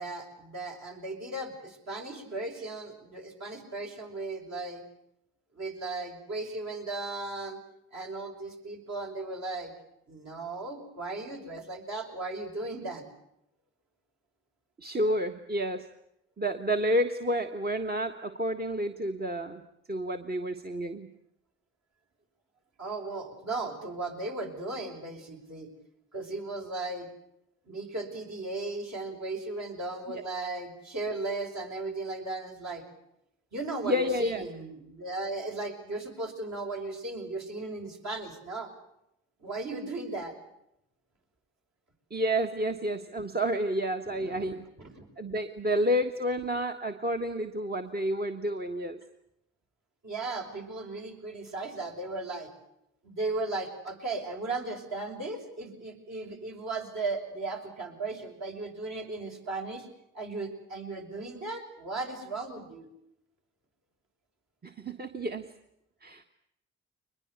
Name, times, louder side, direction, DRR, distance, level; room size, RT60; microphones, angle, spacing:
voice 1, 0.0-4.8 5.5-7.6 7.9-9.7 10.1-13.0 22.8-25.7 26.1-27.1 27.7-32.8 33.5-38.7 39.4-40.4 44.1-44.5 44.8-45.1 50.0-52.5 53.0-59.9 60.1-62.9, right 3 dB, 50° right, 1 dB, 6.3 m, -36 dB
voice 2, 14.8-15.9 16.4-19.6 19.9-21.1 30.1-30.2 33.8-34.5 42.1-44.6 45.2-49.0 64.6-65.5 66.0-66.2, equal, 25° right, 6 dB, 1.6 m, -30 dB
22.5 x 21.5 x 8.2 m, 0.80 s
hypercardioid pair, 45°, 35 cm